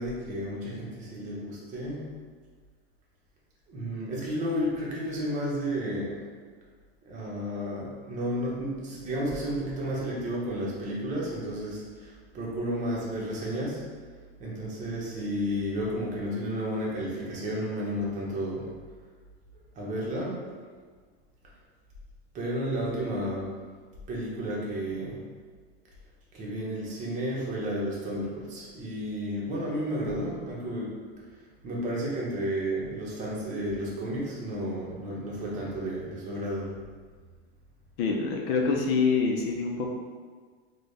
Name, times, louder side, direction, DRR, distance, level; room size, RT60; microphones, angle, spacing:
voice 1, 0.0-2.2 3.7-6.2 7.1-13.9 14.4-18.7 19.5-20.4 22.3-23.5 24.1-25.2 26.3-30.9 31.6-36.7, equal, 25° right, -4 dB, 0.8 m, -32 dB
voice 2, 38.0-39.9, left 4 dB, 65° left, 1 dB, 0.6 m, -26 dB
3.9 x 2.2 x 3.2 m, 1.5 s
supercardioid pair, 150°, 32 cm